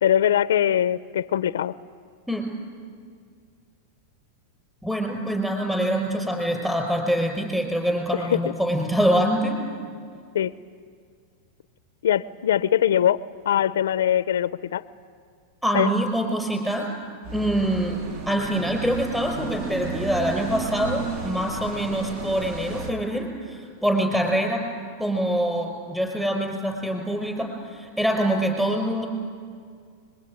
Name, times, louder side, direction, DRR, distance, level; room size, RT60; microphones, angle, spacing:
voice 1, 0.0-1.7 8.1-8.4 10.3-10.5 12.0-14.8 15.7-15.9, left 10 dB, 90° left, 17 dB, 0.6 m, -22 dB
voice 2, 4.8-9.5 15.6-16.9 17.3-18.0 18.3-24.6 25.0-29.1, equal, 5° right, 3 dB, 5.0 m, -25 dB
sound 1, 17.2-22.9, right 4 dB, 40° right, 2.3 m, -33 dB
24.5 x 22.0 x 9.5 m, 2.1 s
supercardioid pair, 140°, 0 cm